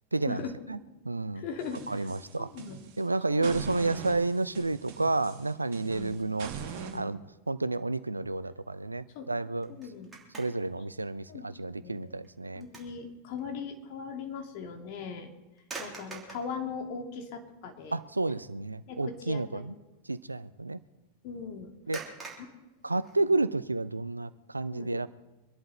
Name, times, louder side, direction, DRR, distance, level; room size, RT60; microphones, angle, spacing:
voice 1, 0.1-0.8 1.0-1.4 1.9-2.5 3.0-6.5 6.9-7.2 7.5-9.7 10.4-12.6 17.9-19.7 20.1-20.8 21.9-22.0 22.8-25.1, right 3 dB, 80° right, 16 dB, 0.5 m, -30 dB
voice 2, 1.3-2.1 2.4-2.8 3.3-3.6 5.8-6.2 9.1-9.3 9.7-10.1 11.3-11.4 11.8-12.1 12.6-15.3 15.8-18.0 18.3-18.4 18.9-19.7 21.2-21.7 23.2-23.3 24.7-24.9, left 6 dB, 45° left, 3 dB, 2.5 m, -39 dB
sound 1, 1.6-3.0 3.4-7.0, right 6 dB, 50° right, 2.5 m, -42 dB
sound 2, 9.6-10.8 11.2-11.4 12.0-13.0 13.4-13.5 15.6-16.5 17.4-17.5 17.8-18.2 18.4-18.7 21.9-23.5, right 4 dB, 15° right, 3.1 m, -45 dB
25.0 x 11.0 x 4.1 m, 1.1 s
figure-of-eight pair, 90°, 0 cm